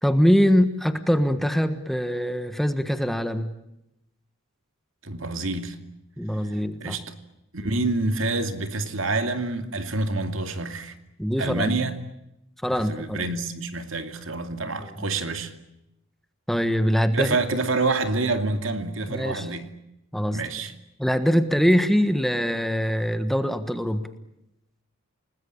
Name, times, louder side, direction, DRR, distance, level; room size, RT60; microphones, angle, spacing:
voice 1, 0.0-3.5 6.2-7.0 11.2-11.8 12.6-13.3 16.5-17.4 19.1-19.5 20.1-20.4 21.0-24.1, equal, ahead, 1.4 m, -23 dB
voice 2, 5.0-5.8 6.8-7.1 7.5-10.9 11.4-12.0 12.7-15.5 17.1-19.7 20.3-20.7, right 3 dB, 70° right, 2.5 m, -27 dB
29.5 x 20.0 x 8.7 m
head